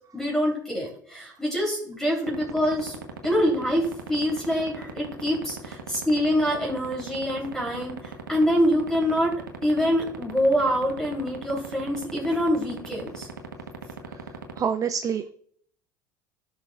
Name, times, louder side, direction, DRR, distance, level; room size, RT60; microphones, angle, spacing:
voice 1, 0.1-3.0 3.2-9.3 9.6-13.3, equal, 5° left, -3 dB, 3.4 m, -25 dB
sound 1, 2.3-14.6, right 9 dB, 90° right, 1.2 m, -35 dB
voice 2, 14.1-15.3, right 7 dB, 30° right, 9 dB, 0.6 m, -28 dB
12.5 x 6.4 x 2.5 m, 0.62 s
hypercardioid pair, 80°, 11 cm